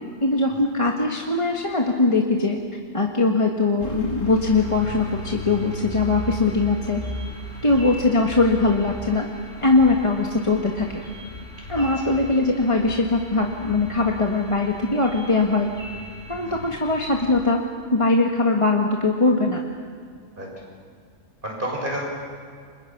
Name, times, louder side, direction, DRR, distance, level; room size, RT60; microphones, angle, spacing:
voice 1, 0.2-2.6 2.9-7.0 7.6-9.3 9.6-10.9 11.7-15.7 16.3-17.6 17.9-19.6, left 3 dB, 25° left, 0 dB, 1.6 m, -21 dB
sound 1, 3.8-17.5, left 2 dB, 65° left, 2.7 m, -37 dB
sound 2, 4.5-17.1, left 1 dB, 70° right, 7.8 m, -46 dB
voice 2, 11.7-12.1 16.4-16.7 20.4-20.5 21.4-22.0, right 1 dB, 40° right, -2 dB, 7.0 m, -32 dB
30.0 x 26.5 x 5.9 m, 2.1 s
omnidirectional pair, 1.4 m